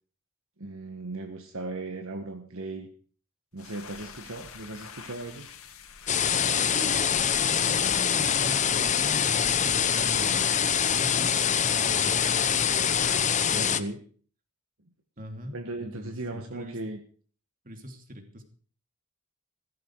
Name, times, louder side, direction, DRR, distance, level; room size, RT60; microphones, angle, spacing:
voice 1, 0.6-2.9 3.5-5.5 13.6-14.0 15.5-17.0, right 2 dB, 65° right, 5 dB, 1.6 m, -37 dB
sound 1, 3.5-13.4, left 6 dB, 75° left, 2.5 m, -45 dB
sound 2, 6.1-13.8, left 8 dB, 35° left, 0.9 m, -24 dB
voice 2, 6.6-12.6 13.1-13.9 15.2-16.8 17.6-18.5, equal, 40° right, 5 dB, 2.8 m, -41 dB
15.5 x 14.5 x 4.7 m, 0.43 s
head